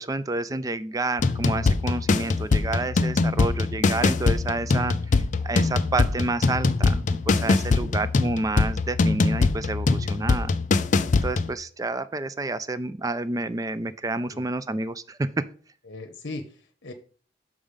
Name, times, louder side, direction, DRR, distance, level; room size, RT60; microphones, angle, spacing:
voice 1, 0.0-5.0 5.4-10.5 11.2-15.4, right 2 dB, 20° right, 14 dB, 0.4 m, -29 dB
sound 1, 1.2-11.5, left 3 dB, 40° left, 0.4 m, -23 dB
voice 2, 7.3-7.9 14.3-14.4 15.9-16.9, left 2 dB, 65° left, 6 dB, 0.8 m, -38 dB
6.2 x 5.1 x 5.4 m, 0.42 s
head